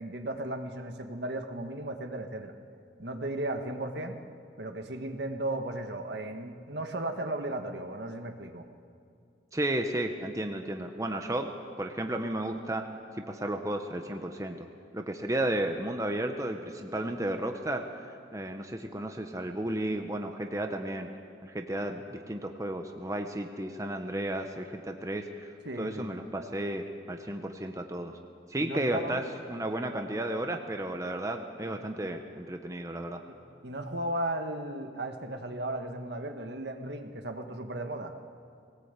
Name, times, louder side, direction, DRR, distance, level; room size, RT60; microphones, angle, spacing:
voice 1, 0.0-2.5 3.0-4.2 4.6-8.6 25.6-26.1 28.6-29.2 31.6-31.8 33.3-33.4 33.6-38.1, right 1 dB, 65° right, 6 dB, 1.5 m, -35 dB
voice 2, 9.5-12.9 13.2-14.7 14.9-17.9 18.3-21.1 21.4-25.5 25.8-28.2 28.5-33.2, right 1 dB, 15° right, 4 dB, 1.0 m, -33 dB
20.5 x 18.5 x 8.3 m, 2.4 s
head